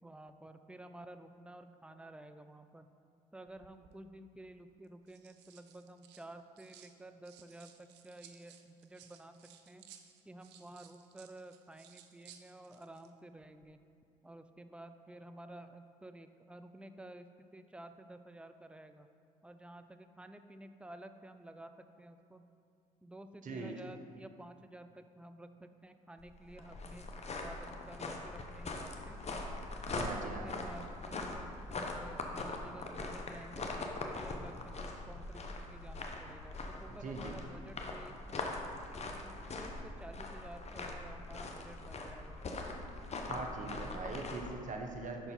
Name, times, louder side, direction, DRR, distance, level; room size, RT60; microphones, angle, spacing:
voice 1, 0.0-2.9 3.3-9.3 9.7-9.8 10.3-13.8 14.2-17.3 17.5-19.1 19.4-21.7 22.0-22.4 23.0-27.1 27.4-29.2 29.9-38.7 39.1-42.4, right 1 dB, 5° right, 8 dB, 0.4 m, -52 dB
sound 1, 3.5-4.0 4.8-6.9 7.2-13.1 13.4-13.7, right 9 dB, 70° right, 0.5 m, -60 dB
voice 2, 23.4-23.8 29.9-30.5 36.9-37.4 43.3-45.3, right 3 dB, 45° right, 3 dB, 0.9 m, -42 dB
sound 2, 26.2-44.5, left 2 dB, 35° left, 0.8 m, -42 dB
5.4 x 4.7 x 5.3 m, 2.3 s
hypercardioid pair, 55°, 19 cm